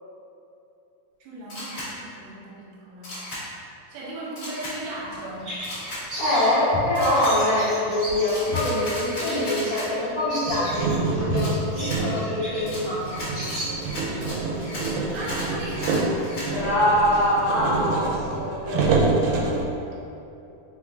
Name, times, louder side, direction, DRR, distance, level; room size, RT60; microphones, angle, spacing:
voice 1, 1.2-3.2 3.9-5.6 14.5-16.2 18.7-19.6, right 1 dB, 70° right, -5 dB, 1.9 m, -37 dB
Camera, 1.5-1.9 3.0-3.4 4.4-4.7 5.6-6.0 6.9-7.3 8.3-9.9 11.4-12.0 12.7-16.5, left 1 dB, 60° left, 0.8 m, -35 dB
Bird vocalization bird call bird song, 5.0-14.2, left 1 dB, 45° right, 1.5 m, -35 dB
voice 2, 6.2-13.3 16.5-19.4, left 1 dB, 85° left, -12 dB, 1.2 m, -24 dB
sound 1, 10.5-19.6, right 3 dB, 85° right, 2.3 m, -27 dB
4.8 x 3.8 x 2.4 m, 2.8 s
omnidirectional pair, 4.0 m